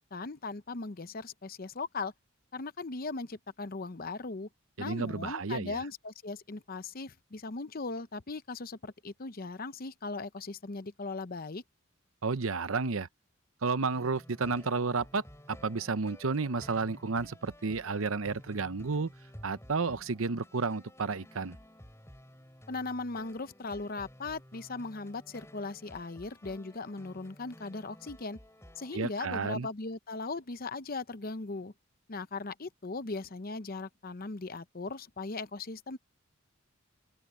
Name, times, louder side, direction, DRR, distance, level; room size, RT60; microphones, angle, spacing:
voice 1, 0.1-2.1 2.5-4.5 4.8-11.6 22.7-28.4 28.7-31.7 32.1-36.0, left 3 dB, 45° left, 0.8 m, -38 dB
voice 2, 4.8-5.8 12.2-13.1 13.6-19.1 19.4-21.6 28.9-29.7, right 4 dB, 80° right, 0.9 m, -32 dB
sound 1, 13.9-29.3, equal, 15° left, 7.4 m, -53 dB
open air
head